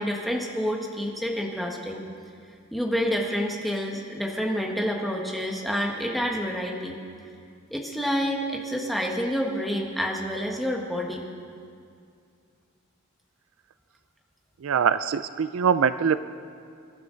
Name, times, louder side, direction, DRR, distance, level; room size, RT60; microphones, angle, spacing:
voice 1, 0.0-2.0 2.7-7.0 7.7-11.3, equal, ahead, -1 dB, 1.5 m, -28 dB
voice 2, 14.6-16.2, right 7 dB, 65° right, 13 dB, 0.4 m, -23 dB
25.5 x 11.5 x 3.9 m, 2.4 s
head